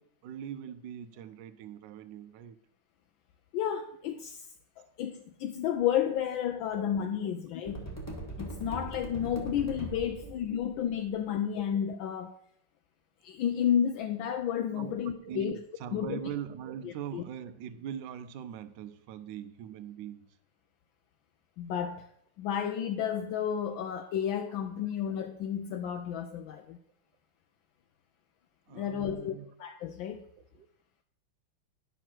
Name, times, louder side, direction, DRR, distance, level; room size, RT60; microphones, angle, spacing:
voice 1, 0.0-2.6 6.7-6.9 7.2-7.3 10.0-10.6 14.8-20.3 28.7-29.5 30.5-30.7, right 9 dB, 70° right, 1.2 m, -42 dB
voice 2, 3.5-4.4 4.8-7.9 8.4-12.3 13.2-15.6 15.9-16.2 16.8-17.2 21.6-22.1 22.4-26.8 28.7-29.3 29.6-30.2, left 9 dB, 80° left, 1.3 m, -31 dB
sound 1, 7.7-11.1, right 1 dB, 10° left, 1.1 m, -41 dB
9.9 x 6.0 x 4.5 m
omnidirectional pair, 2.2 m